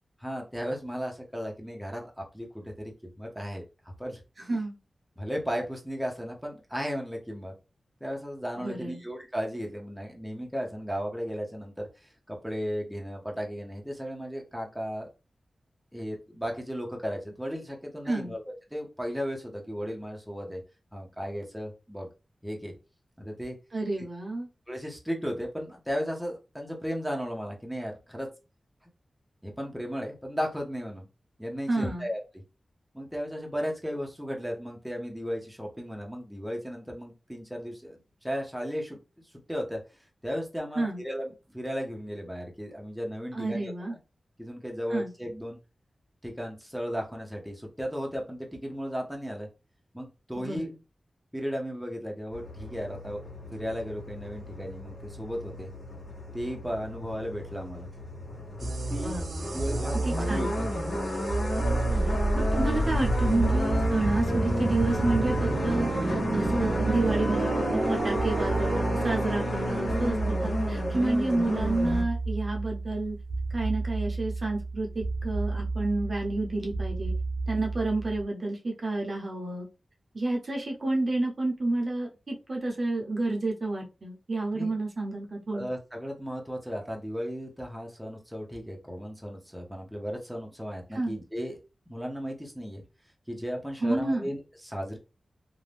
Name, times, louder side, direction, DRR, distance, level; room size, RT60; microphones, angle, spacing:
voice 1, 0.2-3.6 4.0-4.2 5.2-7.5 8.0-15.1 15.9-20.6 20.9-22.1 22.4-22.7 23.2-23.6 24.7-28.3 29.4-31.1 31.4-32.2 32.9-39.0 39.5-39.8 40.2-44.0 44.4-45.6 46.2-49.5 49.9-50.7 51.3-53.2 53.5-55.7 56.3-57.9 58.6-59.2 59.5-60.7 84.5-84.7 85.5-91.6 91.9-92.8 93.3-95.0, equal, ahead, 0 dB, 0.7 m, -35 dB
voice 2, 8.6-9.0 18.1-18.3 23.7-24.5 31.7-32.1 40.8-41.0 43.3-44.0 44.9-45.1 50.4-50.7 59.0-59.6 60.0-60.5 62.0-67.6 67.9-73.2 73.5-77.1 77.5-79.7 80.1-85.7 90.9-91.2 93.8-94.3, right 2 dB, 45° right, 0 dB, 0.7 m, -30 dB
sound 1, 52.3-72.0, left 1 dB, 60° left, 1.0 m, -33 dB
sound 2, 58.6-78.2, right 2 dB, 80° right, 0.5 m, -30 dB
2.5 x 2.1 x 3.3 m, 0.29 s
wide cardioid pair, 125°, 0 cm